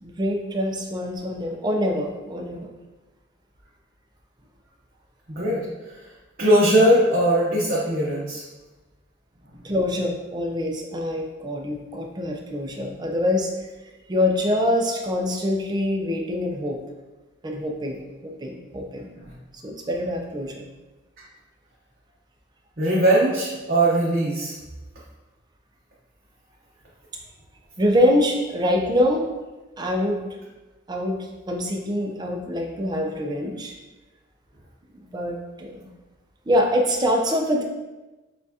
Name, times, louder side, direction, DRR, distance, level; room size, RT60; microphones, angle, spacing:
voice 1, 0.0-2.7 9.6-13.5 14.1-16.8 17.4-19.1 19.6-20.7 27.8-29.3 29.8-30.4 30.9-33.7 35.1-35.9 36.5-37.6, left 1 dB, 20° right, 1 dB, 0.4 m, -25 dB
voice 2, 5.3-6.1 6.4-8.4 9.6-9.7 19.1-19.3 22.8-24.6, right 1 dB, 45° right, -7 dB, 0.8 m, -20 dB
6.5 x 2.4 x 2.7 m, 1.1 s
head